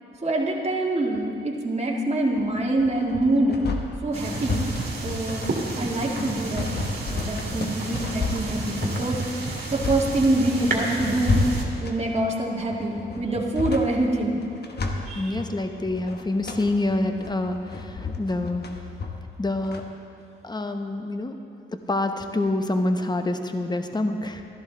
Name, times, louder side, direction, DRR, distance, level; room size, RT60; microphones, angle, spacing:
voice 1, 0.2-3.6 4.0-4.7 5.0-6.7 7.1-11.5 11.8-14.4 15.1-15.4, right 2 dB, 35° right, -1 dB, 1.8 m, -25 dB
sound 1, 2.3-19.8, left 3 dB, 55° left, 1.2 m, -31 dB
sound 2, 4.1-11.6, right 3 dB, 55° right, 2.2 m, -32 dB
voice 2, 15.1-18.7 19.4-19.9 20.4-21.4 21.7-24.4, left 2 dB, 20° left, 6 dB, 0.9 m, -27 dB
13.0 x 11.5 x 3.9 m, 2.6 s
cardioid pair, 60°, 20 cm